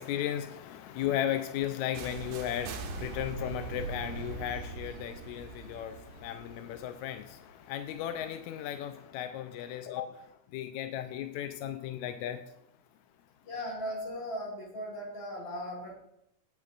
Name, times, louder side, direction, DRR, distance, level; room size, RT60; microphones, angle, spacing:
voice 1, 0.0-10.2 10.5-12.4, left 11 dB, 80° left, 8 dB, 1.7 m, -35 dB
sound 1, 1.9-7.8, right 4 dB, 85° right, 2.4 m, -42 dB
voice 2, 13.4-15.9, equal, 45° left, -2 dB, 4.9 m, -37 dB
16.5 x 8.3 x 2.5 m, 0.75 s
omnidirectional pair, 3.7 m